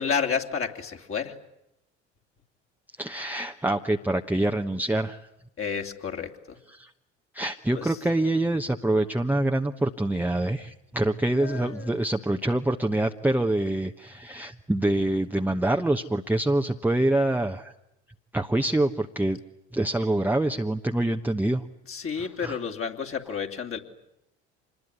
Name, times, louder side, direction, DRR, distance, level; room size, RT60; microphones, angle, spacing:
voice 1, 0.0-1.3 5.6-6.6 7.7-8.0 11.3-11.9 21.9-23.8, left 6 dB, 40° left, 3 dB, 2.8 m, -31 dB
voice 2, 3.0-5.2 6.7-6.9 7.3-17.7 18.3-19.4 19.7-21.6 22.2-22.6, right 1 dB, 5° right, 3 dB, 1.1 m, -25 dB
26.0 x 21.0 x 9.8 m, 0.83 s
hypercardioid pair, 60°, 35 cm